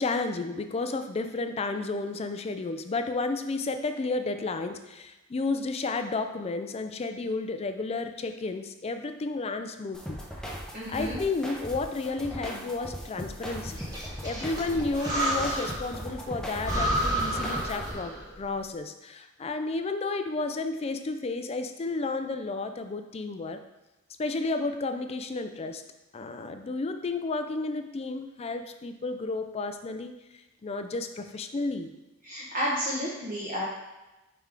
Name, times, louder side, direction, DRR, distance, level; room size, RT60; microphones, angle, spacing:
voice 1, 0.0-10.2 10.9-23.6 24.2-25.8 26.1-31.9, left 3 dB, 30° left, 8 dB, 0.3 m, -32 dB
sound 1, 9.9-17.9, equal, 5° left, 0.7 m, -38 dB
voice 2, 10.7-11.2 32.2-33.6, equal, 40° right, -7 dB, 1.2 m, -31 dB
Breathing, 13.8-15.9 16.3-16.4 16.6-18.3, right 1 dB, 20° right, 1.3 m, -30 dB
5.5 x 4.7 x 3.6 m, 1.0 s
head